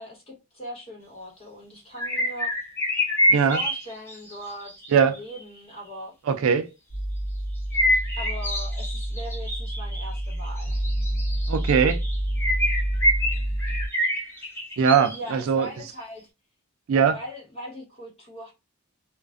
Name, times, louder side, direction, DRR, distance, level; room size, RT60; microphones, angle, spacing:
voice 1, 0.0-2.5 3.4-6.1 8.2-10.8 15.1-16.3 17.0-18.5, equal, 25° left, 1.2 m, -39 dB
sound 1, 2.0-5.4 7.7-15.4 15.9-16.0, equal, 10° left, 0.6 m, -27 dB
voice 2, 6.3-6.7 11.5-12.0 14.8-15.7 16.9-17.2, right 6 dB, 70° right, 0.3 m, -20 dB
sound 2, 6.9-13.9, right 1 dB, 90° left, 0.8 m, -28 dB
2.3 x 2.2 x 2.4 m
head